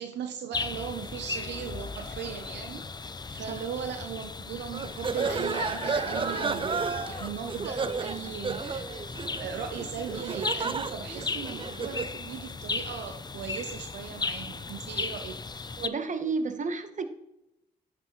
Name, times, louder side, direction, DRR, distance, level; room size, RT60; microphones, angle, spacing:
voice 1, 0.0-15.4, right 7 dB, 75° right, 7 dB, 0.6 m, -38 dB
sound 1, 0.5-15.9, left 4 dB, 25° left, 0.5 m, -37 dB
sound 2, 4.7-12.2, right 5 dB, 30° right, 0.4 m, -33 dB
voice 2, 15.8-17.0, right 4 dB, 45° right, 9 dB, 1.0 m, -31 dB
10.0 x 6.0 x 3.0 m, 0.86 s
supercardioid pair, 45°, 18 cm